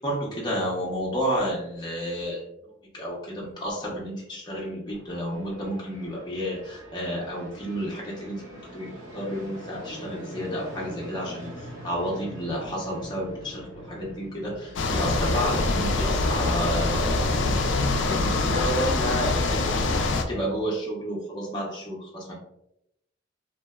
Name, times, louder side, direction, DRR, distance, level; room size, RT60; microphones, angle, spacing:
voice 1, 0.0-2.5 2.9-22.4, equal, 25° left, -4 dB, 0.5 m, -31 dB
sound 1, 4.9-17.7, equal, 80° right, 0.9 m, -44 dB
sound 2, 14.8-20.2, left 2 dB, 70° left, 0.3 m, -24 dB
2.7 x 2.1 x 2.2 m, 0.78 s
head